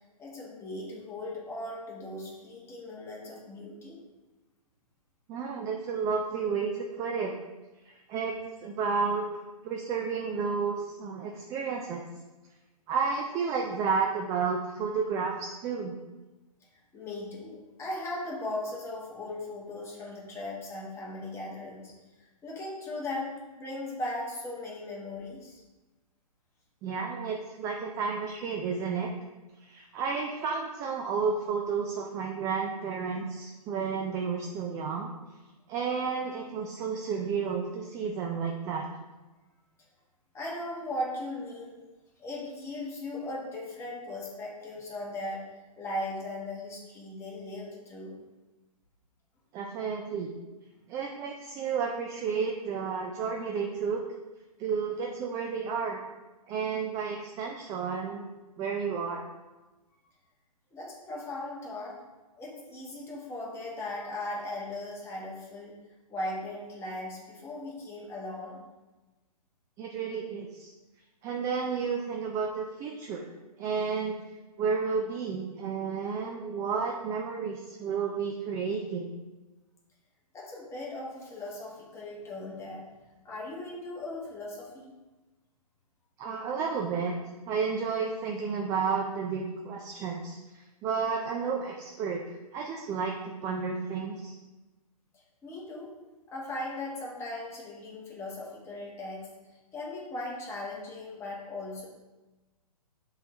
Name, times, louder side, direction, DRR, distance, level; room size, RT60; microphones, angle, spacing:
voice 1, 0.2-4.0 16.9-21.9 22.4-25.6 40.3-41.7 42.2-45.4 45.8-48.2 60.7-62.0 62.4-65.7 66.1-68.6 80.3-82.9 83.2-84.9 95.1-95.9 96.3-101.9, left 1 dB, 15° left, -4 dB, 1.6 m, -38 dB
voice 2, 5.3-7.3 7.8-8.3 8.6-9.3 9.6-12.0 12.9-15.3 15.6-16.0 26.8-29.1 29.7-35.1 35.7-38.8 49.5-50.3 50.9-54.0 54.6-56.0 56.5-58.3 58.6-59.3 69.8-70.7 71.2-73.2 73.6-74.1 74.6-79.1 86.2-87.2 87.5-90.4 90.8-94.3, right 5 dB, 15° right, 1 dB, 0.4 m, -31 dB
6.7 x 3.9 x 4.4 m, 1.2 s
figure-of-eight pair, 130°, 20 cm